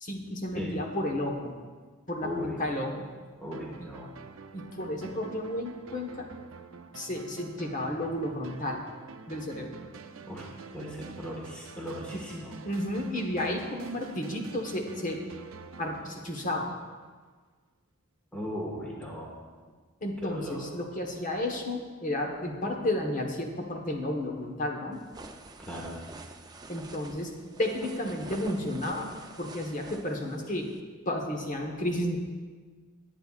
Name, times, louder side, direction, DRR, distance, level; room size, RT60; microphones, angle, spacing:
voice 1, 0.0-1.5 2.1-3.1 3.8-3.9 4.5-6.3 6.9-8.8 9.3-9.7 12.1-12.3 12.6-15.2 15.8-16.7 20.0-25.0 26.7-27.3 27.6-29.1 29.4-30.7 31.0-32.2, left 1 dB, 40° left, 2 dB, 1.3 m, -32 dB
voice 2, 2.2-2.6 3.4-4.1 10.3-10.5 10.7-12.5 18.3-19.3 20.2-20.6 25.6-26.0, equal, 5° left, -4 dB, 1.6 m, -37 dB
sound 1, 3.5-17.1, right 4 dB, 70° right, 0.6 m, -47 dB
sound 2, 24.9-30.8, right 2 dB, 20° right, 0.5 m, -47 dB
19.5 x 9.0 x 2.5 m, 1.5 s
head